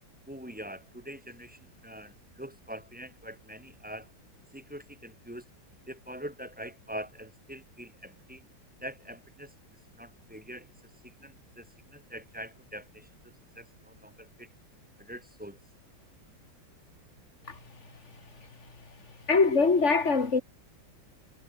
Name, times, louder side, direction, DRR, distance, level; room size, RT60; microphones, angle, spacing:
voice 1, 0.3-4.1 4.5-5.4 5.9-8.4 8.8-9.5 9.9-10.7 11.0-14.5 15.0-15.6, equal, 5° right, 4.6 m, -44 dB
voice 2, 19.3-20.4, left 4 dB, 35° left, 2.8 m, -22 dB
omnidirectional pair, 2.2 m